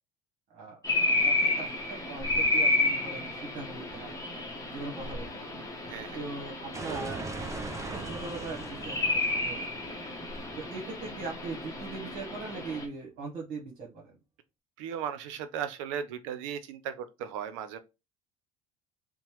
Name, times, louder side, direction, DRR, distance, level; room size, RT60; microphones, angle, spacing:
voice 1, 0.5-0.8 1.2-4.1 4.7-5.5 6.1-7.2 7.7-9.8 10.6-14.2, right 4 dB, 55° right, 1.0 m, -40 dB
sound 1, 0.8-12.9, left 2 dB, 20° left, 0.8 m, -31 dB
voice 2, 5.9-6.2 14.8-17.8, right 8 dB, 80° right, 0.5 m, -36 dB
sound 2, 6.7-11.5, right 3 dB, 20° right, 0.4 m, -41 dB
2.9 x 2.0 x 2.9 m
hypercardioid pair, 80°, 16 cm